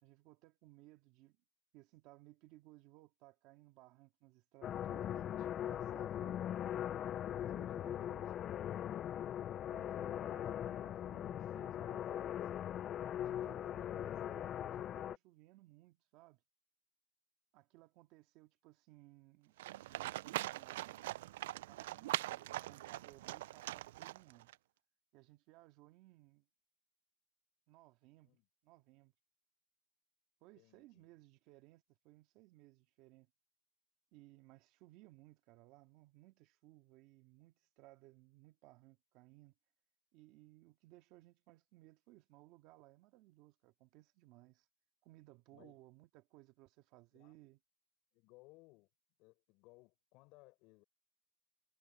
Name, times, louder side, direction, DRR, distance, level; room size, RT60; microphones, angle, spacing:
voice 1, 0.0-1.4 1.7-6.4 7.3-8.3 9.7-12.4 13.3-16.4 17.5-21.0 21.7-24.5 25.1-26.5 27.7-28.3 28.6-29.1 30.4-33.3 34.1-39.5 40.1-44.7 45.0-47.6, right 18 dB, 50° right, 1.9 m, -62 dB
sound 1, 4.6-15.2, left 10 dB, 30° left, 0.3 m, -40 dB
voice 2, 7.5-8.4 13.0-13.9 28.2-28.4 30.5-31.1 45.5-45.8 47.1-47.3 48.1-48.9 49.2-50.8, left 24 dB, 50° left, 6.4 m, -63 dB
Livestock farm animals working animals, 19.6-24.5, right 16 dB, 85° right, 0.3 m, -42 dB
supercardioid pair, 155°, 0 cm